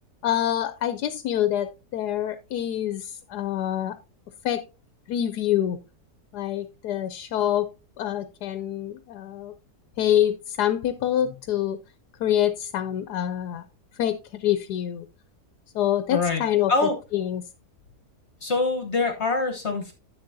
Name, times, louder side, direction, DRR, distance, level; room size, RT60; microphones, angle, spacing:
voice 1, 0.2-4.0 4.4-4.6 5.1-5.8 6.3-7.7 8.0-9.5 10.0-11.8 12.2-13.6 14.0-15.1 15.7-16.7 17.1-17.4, left 11 dB, 85° left, 11 dB, 1.2 m, -26 dB
voice 2, 16.1-16.4 16.7-17.0 18.4-19.9, left 3 dB, 50° left, 5 dB, 1.3 m, -24 dB
10.5 x 7.7 x 2.6 m, 0.29 s
omnidirectional pair, 1.7 m